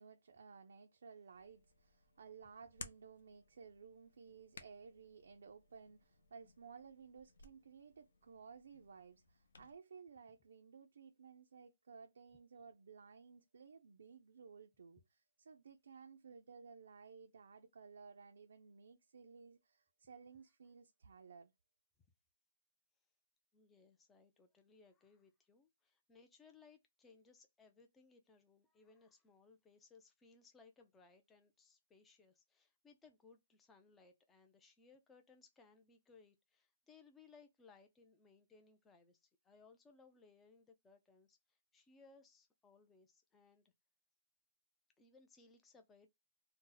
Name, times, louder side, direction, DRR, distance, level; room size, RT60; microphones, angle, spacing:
voice 1, 0.0-21.5, right 5 dB, 70° right, 0.4 m, -57 dB
Hands, 1.3-9.7, left 4 dB, 70° left, 0.6 m, -60 dB
voice 2, 23.5-43.6 45.0-46.1, left 4 dB, 10° left, 0.3 m, -65 dB
2.7 x 2.0 x 3.7 m
hypercardioid pair, 170°, 0 cm